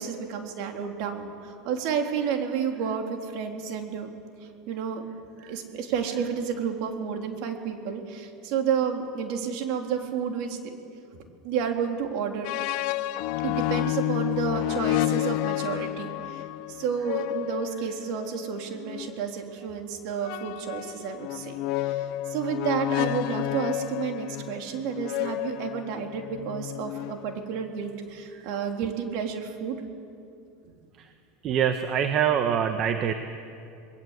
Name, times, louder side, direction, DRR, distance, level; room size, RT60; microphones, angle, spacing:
voice 1, 0.0-4.1 4.4-5.0 5.4-10.7 11.4-12.5 13.4-29.8 30.6-30.7, right 7 dB, 60° right, 3 dB, 3.5 m, -31 dB
sound 1, 12.4-19.2 20.2-27.6, left 16 dB, 65° left, 0.7 m, -30 dB
voice 2, 31.4-33.1, right 8 dB, 45° right, 7 dB, 1.4 m, -24 dB
27.5 x 21.0 x 8.3 m, 2.5 s
supercardioid pair, 110°, 0 cm